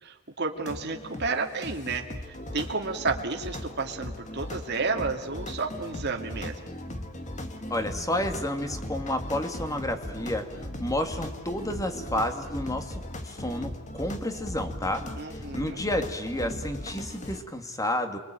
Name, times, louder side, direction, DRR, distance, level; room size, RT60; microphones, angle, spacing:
voice 1, 0.0-6.5 15.2-15.8, right 4 dB, 55° right, 3 dB, 2.5 m, -31 dB
sound 1, 0.6-17.4, left 1 dB, 35° left, 2.4 m, -38 dB
voice 2, 7.7-15.1 15.5-18.2, left 1 dB, 15° left, 7 dB, 2.4 m, -31 dB
28.0 x 23.0 x 9.1 m, 1.0 s
head